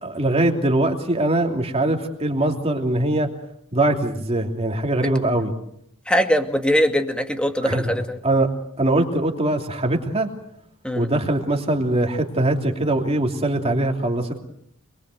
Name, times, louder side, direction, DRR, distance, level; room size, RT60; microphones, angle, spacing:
voice 1, 0.0-3.3 3.7-5.5 7.6-8.5 8.8-10.3 10.9-14.4, right 1 dB, 25° right, 3 dB, 3.0 m, -22 dB
voice 2, 6.1-8.2 10.8-11.1, equal, 5° left, 6 dB, 2.1 m, -21 dB
27.5 x 22.5 x 7.9 m, 0.71 s
head